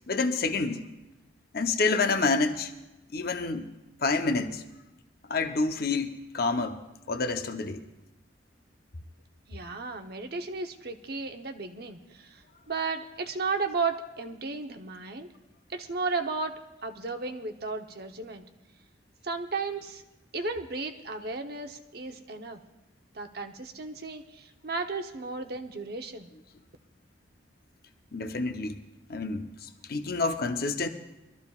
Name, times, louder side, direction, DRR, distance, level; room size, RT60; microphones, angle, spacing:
voice 1, 0.1-0.8 1.5-2.7 3.1-3.7 4.0-4.6 5.3-6.8 7.1-7.8 28.1-28.8 29.1-30.9, left 3 dB, 55° left, 6 dB, 0.8 m, -28 dB
voice 2, 9.5-15.3 15.7-18.4 19.2-20.0 20.3-22.6 23.1-26.3, right 4 dB, 55° right, 6 dB, 0.9 m, -34 dB
23.5 x 13.5 x 2.4 m, 0.99 s
head